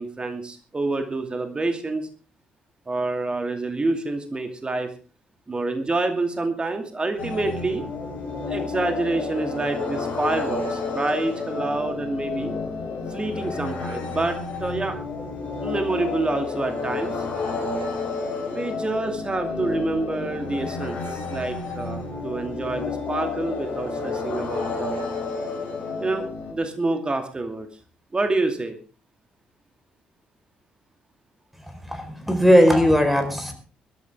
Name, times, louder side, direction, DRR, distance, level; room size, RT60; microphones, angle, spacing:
voice 1, 0.0-2.1 2.9-4.9 5.5-7.8 8.5-12.5 13.1-15.0 15.6-17.2 18.5-24.9 26.0-27.7 28.1-28.8, right 2 dB, 25° right, 6 dB, 2.5 m, -27 dB
sound 1, 7.2-26.5, left 4 dB, 50° left, 4.7 m, -30 dB
voice 2, 31.6-33.5, equal, 5° right, 6 dB, 4.8 m, -18 dB
21.5 x 13.5 x 3.7 m, 0.35 s
figure-of-eight pair, 45°, 4 cm